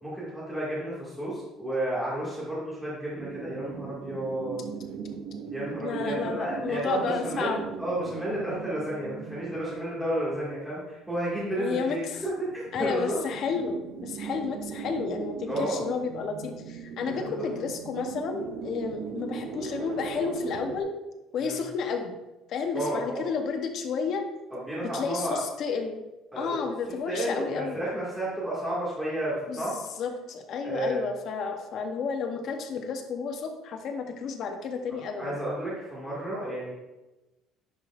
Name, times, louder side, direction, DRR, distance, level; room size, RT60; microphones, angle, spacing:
voice 1, 0.0-4.7 5.5-13.2 15.5-15.8 17.0-17.3 21.4-21.6 22.7-23.3 24.5-25.4 26.3-26.6 27.1-29.8 30.6-31.0 35.2-36.7, right 1 dB, 5° right, -10 dB, 2.1 m, -32 dB
sound 1, 3.2-10.5 10.8-10.9 11.1-11.7 12.3-20.8, right 6 dB, 65° right, 0.5 m, -39 dB
voice 2, 5.8-7.6 11.6-12.2 12.7-20.9 21.3-22.2 22.5-24.2 24.8-26.0 26.4-27.8 29.5-29.7 30.0-35.4, left 5 dB, 50° left, 5 dB, 0.9 m, -31 dB
10.0 x 4.9 x 2.5 m, 1.0 s
cardioid pair, 150°, 0 cm